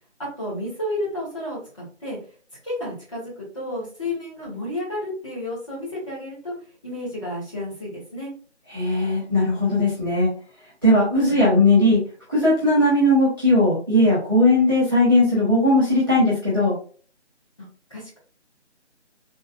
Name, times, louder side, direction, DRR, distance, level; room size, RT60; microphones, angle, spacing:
voice 1, 0.4-2.2 2.6-6.5 6.8-8.3 11.3-11.6 17.9-18.2, left 1 dB, 25° left, -6 dB, 1.5 m, -31 dB
voice 2, 8.7-10.3 10.8-12.0 12.3-16.8, left 1 dB, 20° right, -10 dB, 0.8 m, -18 dB
3.6 x 2.9 x 2.2 m, 0.41 s
figure-of-eight pair, 160°, 36 cm